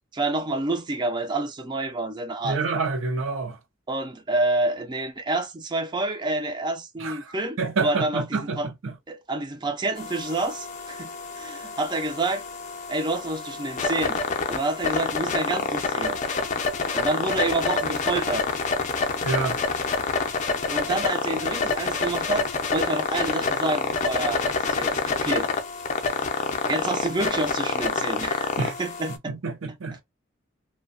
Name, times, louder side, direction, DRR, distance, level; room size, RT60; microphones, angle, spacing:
voice 1, 0.1-2.6 3.9-8.7 9.1-12.4 12.9-14.2 14.5-16.2 16.9-18.5 20.7-25.5 26.7-29.3, right 2 dB, 20° right, 0.4 m, -28 dB
voice 2, 2.4-3.6 7.0-8.9 19.2-19.6 28.6-28.7 29.3-30.0, right 4 dB, 75° right, 0.6 m, -28 dB
sound 1, 10.0-29.2, left 4 dB, 35° left, 0.4 m, -27 dB
2.6 x 2.2 x 2.4 m
head